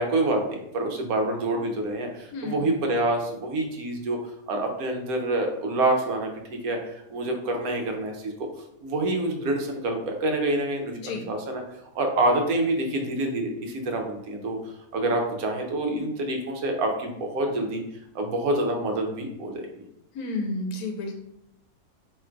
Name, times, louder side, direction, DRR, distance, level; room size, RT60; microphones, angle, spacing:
voice 1, 0.0-4.2 4.5-8.3 8.8-11.6 12.0-14.6 14.9-17.8 18.1-19.7, right 2 dB, 80° right, 3 dB, 1.1 m, -27 dB
voice 2, 2.3-2.7 11.0-11.3 20.1-21.2, left 2 dB, 85° left, 3 dB, 1.1 m, -31 dB
3.0 x 2.5 x 4.3 m, 0.81 s
omnidirectional pair, 1.5 m